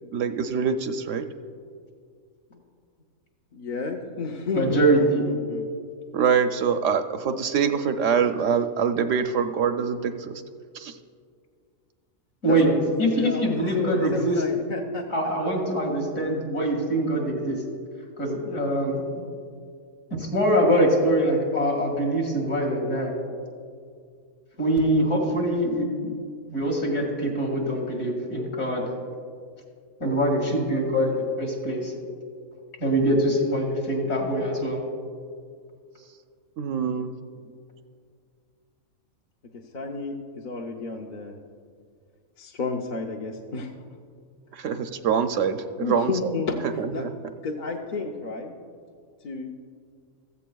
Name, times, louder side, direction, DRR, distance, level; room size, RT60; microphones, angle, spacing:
voice 1, 0.1-1.2 6.1-10.4 10.7-11.0 36.6-37.1 44.5-46.3 46.8-47.1, right 6 dB, 70° right, 8 dB, 0.9 m, -24 dB
voice 2, 3.5-5.7 12.5-15.1 36.8-36.9 37.4-37.6 39.7-41.3 42.4-43.7 45.8-46.6 46.9-47.0 47.4-48.5 49.2-49.5, left 4 dB, 45° left, 1 dB, 0.7 m, -31 dB
voice 3, 4.5-5.2 12.4-12.7 13.0-14.4 15.1-17.6 18.2-19.0 20.2-23.1 24.6-26.1 26.5-28.8 30.0-31.9 32.8-34.8, right 1 dB, 60° left, -2 dB, 2.5 m, -23 dB
15.5 x 14.0 x 2.3 m, 2.2 s
omnidirectional pair, 1.4 m